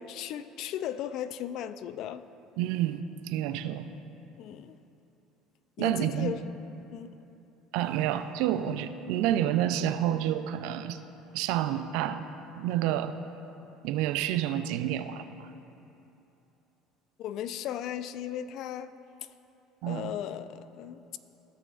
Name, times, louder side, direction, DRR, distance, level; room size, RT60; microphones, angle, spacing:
voice 1, 0.0-2.2 4.4-4.8 5.8-6.5 6.9-7.2 17.2-18.9 19.9-21.2, left 10 dB, 65° left, 13 dB, 0.3 m, -36 dB
voice 2, 2.6-3.9 5.8-6.4 7.7-11.0 11.3-12.3 12.6-13.2 13.8-15.5 19.8-20.1, right 11 dB, 75° right, 10 dB, 0.4 m, -29 dB
15.5 x 6.1 x 2.4 m, 2.9 s
supercardioid pair, 95°, 0 cm